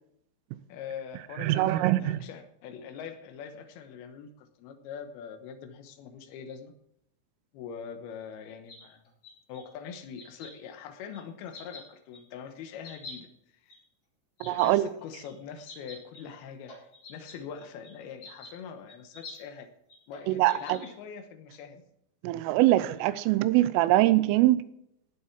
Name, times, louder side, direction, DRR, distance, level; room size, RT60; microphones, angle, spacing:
voice 1, 0.7-6.7 7.5-9.0 9.5-13.3 13.6-13.7 14.5-19.7 20.1-21.8, left 7 dB, 70° left, 7 dB, 2.5 m, -43 dB
voice 2, 1.4-2.2 14.4-14.9 20.3-20.8 22.2-24.6, right 16 dB, 85° right, 15 dB, 3.3 m, -23 dB
sound 1, 8.7-9.6 10.2-10.5 11.1-11.2 11.4-11.8 12.1-12.2 12.8-13.1 13.7-13.8 14.4-14.7 15.2-15.3 15.6-16.2 16.5-17.9 18.2-18.5 18.9-19.4 19.9-20.9, left 3 dB, 35° left, 4.8 m, -46 dB
18.0 x 7.4 x 4.6 m, 0.77 s
omnidirectional pair, 5.7 m